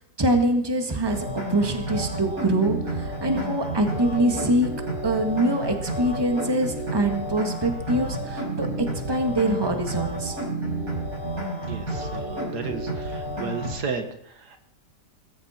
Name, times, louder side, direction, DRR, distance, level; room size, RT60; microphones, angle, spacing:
voice 1, 0.2-4.7 5.0-10.4, right 1 dB, 15° right, 4 dB, 1.8 m, -24 dB
sound 1, 1.0-13.8, right 1 dB, 55° right, 7.2 m, -31 dB
voice 2, 11.6-14.6, right 5 dB, 70° right, 7 dB, 2.0 m, -34 dB
20.0 x 15.5 x 4.4 m, 0.68 s
omnidirectional pair, 1.8 m